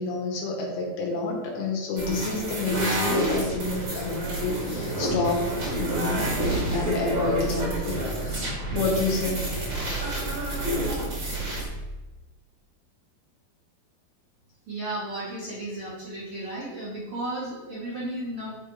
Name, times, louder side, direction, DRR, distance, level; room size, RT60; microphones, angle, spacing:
voice 1, 0.0-5.5 5.7-6.3 6.7-8.4 8.7-9.5 9.8-9.9, left 3 dB, 80° left, -1 dB, 3.3 m, -29 dB
sound 1, 2.0-11.6, right 1 dB, 40° right, 2.9 m, -29 dB
sound 2, 6.5-12.1, equal, 65° left, 1.9 m, -37 dB
voice 2, 14.7-18.5, right 1 dB, 60° right, -7 dB, 1.5 m, -34 dB
10.0 x 3.6 x 4.7 m, 1.1 s
omnidirectional pair, 4.5 m